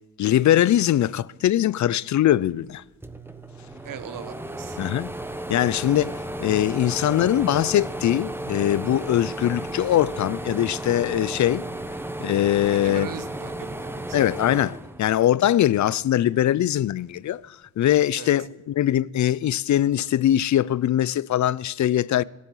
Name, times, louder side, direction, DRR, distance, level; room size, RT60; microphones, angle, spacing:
voice 1, 0.2-2.8 4.8-5.1 5.5-11.6 12.2-13.1 14.1-22.2, left 12 dB, 60° left, 0.5 m, -22 dB
sound 1, 2.7-2.8 3.0-15.6 16.0-17.2, right 1 dB, 5° right, 1.0 m, -34 dB
voice 2, 3.8-4.8 12.7-14.2 18.1-18.3, right 8 dB, 80° right, 1.5 m, -38 dB
17.5 x 8.4 x 9.3 m
cardioid pair, 105°, 33 cm